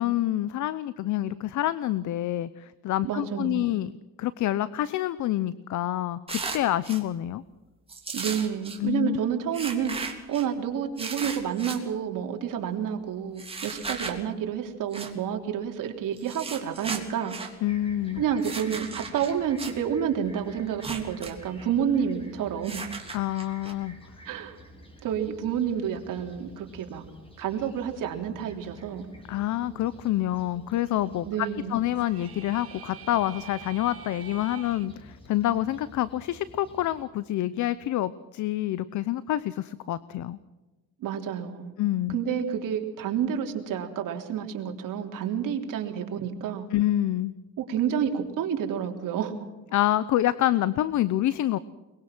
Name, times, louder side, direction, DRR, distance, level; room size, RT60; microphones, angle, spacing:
voice 1, 0.0-3.9 4.2-7.4 8.8-9.2 17.6-18.2 23.1-23.9 29.3-40.4 41.8-42.2 46.7-47.3 49.7-51.6, left 13 dB, 55° left, 17 dB, 0.8 m, -27 dB
voice 2, 3.0-3.7 8.1-17.4 18.2-22.8 24.3-24.6 25.0-27.0 27.4-29.1 31.2-31.8 41.0-41.8 42.1-46.7 47.6-49.3, right 8 dB, 60° right, 3 dB, 3.5 m, -29 dB
sound 1, 6.3-7.0 7.9-8.8 9.5-10.5 11.0-11.8 13.4-14.2 14.9-15.1 16.2-17.5 18.4-19.7 20.7-21.3 21.6-21.7 22.6-23.7, right 4 dB, 15° right, 3.3 m, -36 dB
Fixed-wing aircraft airplane, 17.7-37.0, equal, 15° left, 6.1 m, -50 dB
sound 2, 32.0-34.9, right 8 dB, 40° right, 2.2 m, -46 dB
22.5 x 21.5 x 6.2 m, 1.2 s
cardioid pair, 130°, 36 cm